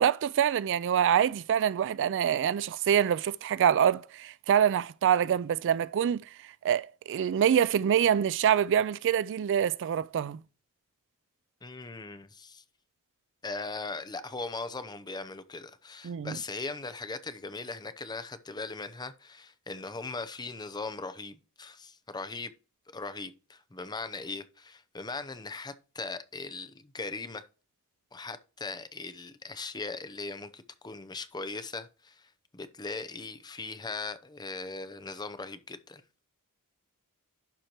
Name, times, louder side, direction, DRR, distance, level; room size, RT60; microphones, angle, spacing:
voice 1, 0.0-6.2 6.6-10.4 16.0-16.4, right 9 dB, 55° right, 0.3 m, -25 dB
voice 2, 11.6-12.6 13.4-22.5 22.9-27.5 28.1-36.0, left 3 dB, 20° left, 0.7 m, -39 dB
11.5 x 4.4 x 2.9 m
head